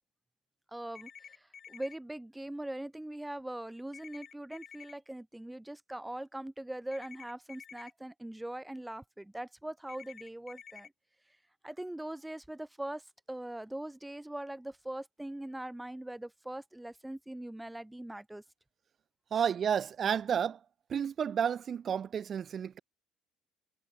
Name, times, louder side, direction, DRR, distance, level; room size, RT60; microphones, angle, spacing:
voice 1, 0.7-10.9 11.6-18.4 19.3-19.5, right 1 dB, 5° right, 2.7 m, -41 dB
sound 1, 1.0-2.0 3.9-4.9 6.9-7.9 9.9-10.9, left 7 dB, 40° left, 2.2 m, -50 dB
voice 2, 19.3-20.6 20.9-22.8, right 8 dB, 45° right, 1.2 m, -31 dB
supercardioid pair, 85°, 0 cm